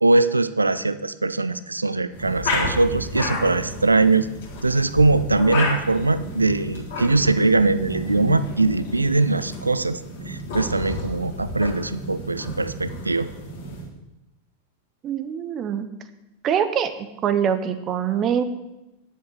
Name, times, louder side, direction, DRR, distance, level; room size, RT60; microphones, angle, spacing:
voice 1, 0.0-4.3 4.6-10.0 10.3-13.3, right 3 dB, 80° right, 14 dB, 0.6 m, -21 dB
sound 1, 2.1-13.9, left 1 dB, 55° left, 3.8 m, -31 dB
voice 2, 15.0-15.9 16.4-16.9 17.2-18.4, right 8 dB, 30° right, 11 dB, 1.0 m, -23 dB
10.5 x 7.7 x 8.2 m, 0.94 s
figure-of-eight pair, 90°, 0 cm